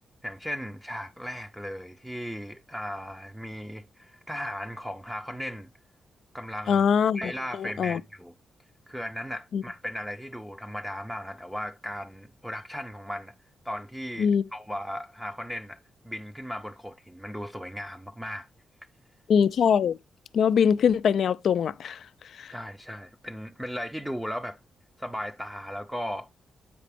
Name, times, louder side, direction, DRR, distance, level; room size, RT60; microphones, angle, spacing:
voice 1, 0.2-5.7 6.3-6.8 7.1-8.3 8.9-13.3 13.6-18.5 22.5-24.6 25.0-26.3, equal, ahead, 0.5 m, -36 dB
voice 2, 6.7-7.3 7.6-8.0 9.5-9.6 14.2-14.5 19.3-20.0 20.3-22.0 22.4-22.5, left 7 dB, 65° left, 0.3 m, -22 dB
8.4 x 4.9 x 3.4 m
cardioid pair, 110°, 0 cm